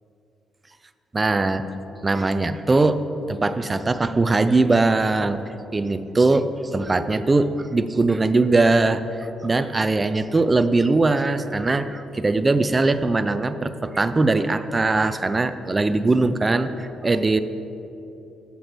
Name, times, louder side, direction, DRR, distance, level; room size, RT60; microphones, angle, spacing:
voice 1, 1.1-1.6 2.0-3.0 3.3-5.4 5.7-9.0 9.4-17.4, right 3 dB, 25° right, 11 dB, 0.5 m, -21 dB
8.1 x 6.9 x 6.1 m, 2.9 s
cardioid pair, 90°, 0 cm